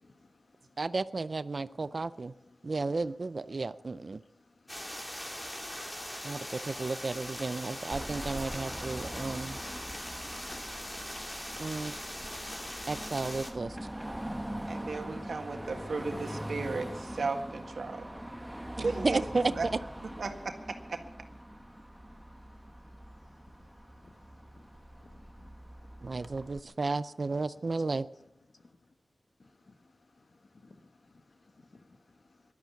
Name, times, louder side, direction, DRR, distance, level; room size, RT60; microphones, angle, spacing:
voice 1, 0.0-0.9 1.6-3.1 3.6-6.9 21.5-26.9 27.5-28.9 29.4-32.5, left 3 dB, 60° left, 1.4 m, -63 dB
voice 2, 0.8-2.3 2.6-4.2 6.2-9.6 11.6-11.9 12.9-13.8 18.8-19.4 26.0-28.1, right 3 dB, 55° right, 0.5 m, -33 dB
sound 1, 4.7-13.5, equal, 20° left, 3.3 m, -41 dB
Car passing by / Traffic noise roadway noise / Engine, 7.9-26.6, right 1 dB, 10° right, 1.0 m, -43 dB
voice 3, 14.7-18.1 18.8-19.7 20.0-21.0, right 3 dB, 85° right, 1.7 m, -36 dB
16.0 x 12.0 x 7.1 m
wide cardioid pair, 70°, 0 cm